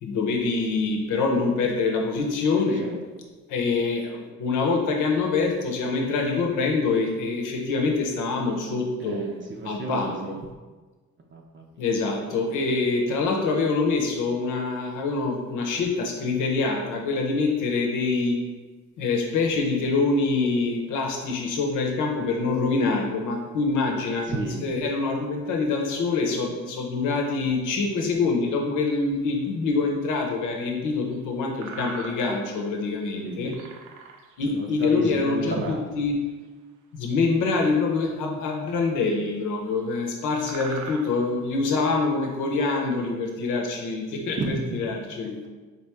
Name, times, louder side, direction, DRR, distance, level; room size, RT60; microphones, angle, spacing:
voice 1, 0.0-2.8 3.5-9.2 9.6-10.4 11.8-18.4 19.0-24.3 24.6-33.5 34.4-36.2 36.9-45.4, left 4 dB, 90° left, 1 dB, 0.8 m, -25 dB
voice 2, 2.6-3.0 9.0-10.4 11.3-11.8 24.2-24.6 33.2-33.6 34.5-35.8 44.4-44.8, right 2 dB, 40° right, 0 dB, 0.6 m, -32 dB
sound 1, 29.5-29.6 30.1-30.2 31.1-31.2 31.6-32.5 32.8-33.1 33.5-34.6 35.2-35.5 36.2-36.5 37.8-37.9 38.5-38.6 39.4-39.5 40.1-40.2 40.4-42.0, right 4 dB, 80° right, 0.6 m, -41 dB
4.0 x 3.0 x 3.4 m, 1.3 s
cardioid pair, 90°, 30 cm